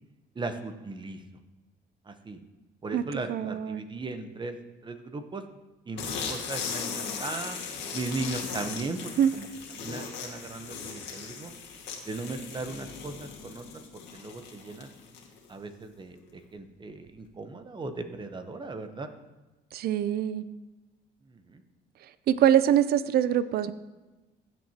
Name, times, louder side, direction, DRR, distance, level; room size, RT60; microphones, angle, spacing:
voice 1, 0.3-1.2 2.1-2.4 2.8-4.5 4.8-5.4 5.9-7.6 7.9-9.5 9.7-11.5 12.0-13.6 14.1-14.9 15.5-19.1 21.3-21.6, right 3 dB, 25° right, 8 dB, 0.9 m, -37 dB
voice 2, 3.3-3.8 9.2-9.3 19.7-20.4 22.3-23.7, right 10 dB, 55° right, 14 dB, 0.5 m, -23 dB
sound 1, 6.0-15.5, left 6 dB, 70° left, 1.9 m, -38 dB
15.5 x 7.6 x 2.9 m, 1.1 s
cardioid pair, 110°, 19 cm